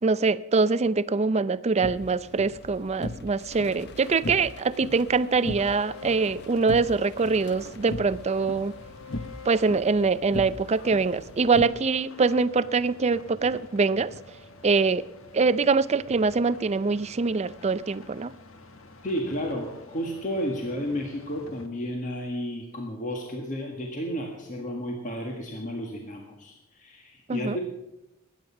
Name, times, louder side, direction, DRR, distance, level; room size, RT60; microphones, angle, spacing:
voice 1, 0.0-8.7 9.4-14.1 14.6-15.0 15.3-18.3 27.3-27.6, right 4 dB, 30° right, 16 dB, 0.4 m, -24 dB
sound 1, 1.8-11.6, left 1 dB, 55° left, 0.9 m, -39 dB
sound 2, 5.5-21.7, left 3 dB, 70° left, 1.3 m, -48 dB
voice 2, 19.0-27.6, equal, 40° left, 0 dB, 1.8 m, -32 dB
21.5 x 9.4 x 5.8 m, 0.95 s
head